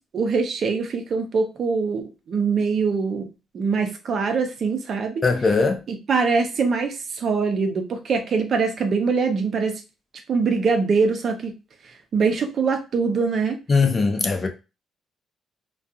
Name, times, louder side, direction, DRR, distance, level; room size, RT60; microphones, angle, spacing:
voice 1, 0.1-3.3 3.5-5.2 5.9-9.8 10.3-11.5 12.1-13.6, right 4 dB, 55° right, 0.6 m, -23 dB
voice 2, 5.2-5.8 13.7-14.5, left 4 dB, 35° left, 0.6 m, -20 dB
2.3 x 2.3 x 2.7 m
cardioid pair, 90°, 0 cm